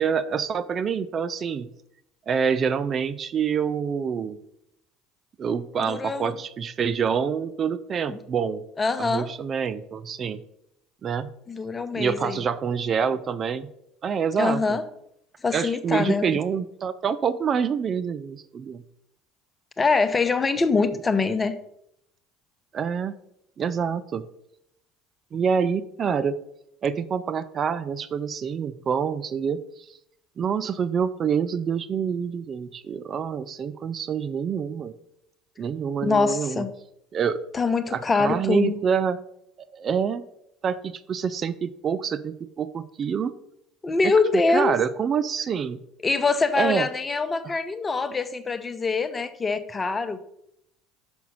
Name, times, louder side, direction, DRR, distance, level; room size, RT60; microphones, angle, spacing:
voice 1, 0.0-1.7 2.3-4.4 5.4-8.6 9.0-10.4 11.0-11.3 12.0-13.7 14.0-14.6 15.5-18.8 22.7-23.1 23.6-24.2 25.3-26.4 26.8-29.6 30.4-34.9 35.6-36.6 37.1-37.4 37.9-39.2 39.7-40.3 40.6-43.3 44.0-44.1 44.5-45.8 46.5-46.9, right 7 dB, 40° right, 14 dB, 0.4 m, -26 dB
voice 2, 5.8-6.3 8.1-8.2 8.8-9.3 11.5-12.5 14.4-14.8 15.4-16.3 19.8-21.6 36.0-36.7 37.5-38.8 43.8-44.8 46.0-50.2, left 4 dB, 25° left, 10 dB, 0.8 m, -24 dB
6.2 x 5.7 x 5.4 m, 0.78 s
hypercardioid pair, 65°, 0 cm